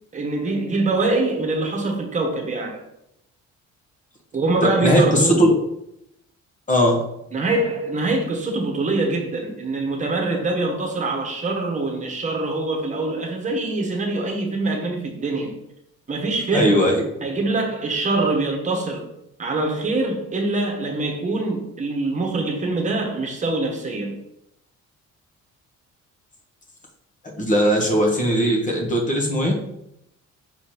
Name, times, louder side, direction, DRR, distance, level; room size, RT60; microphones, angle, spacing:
voice 1, 0.1-2.8 4.3-5.5 7.3-15.6 16.1-16.9 17.2-19.0 19.4-24.2, right 2 dB, 25° right, 1.4 m, -24 dB
voice 2, 4.6-5.5 6.7-7.0 16.5-17.0 27.4-29.5, equal, 25° left, 1.4 m, -18 dB
6.3 x 4.1 x 4.3 m
cardioid pair, 165°, 30 cm